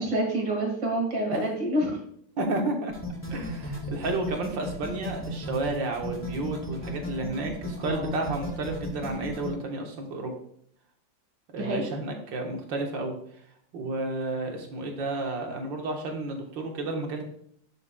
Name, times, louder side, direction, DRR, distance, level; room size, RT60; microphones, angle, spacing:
voice 1, 0.0-2.0 7.8-8.1 11.6-11.9, right 1 dB, 60° right, 0 dB, 2.5 m, -27 dB
voice 2, 2.4-2.9 3.3-10.3 11.5-13.2 13.7-17.2, right 2 dB, 75° right, 2 dB, 1.9 m, -31 dB
sound 1, 2.9-9.5, left 1 dB, 5° left, 1.4 m, -35 dB
10.5 x 6.5 x 2.2 m, 0.65 s
omnidirectional pair, 2.0 m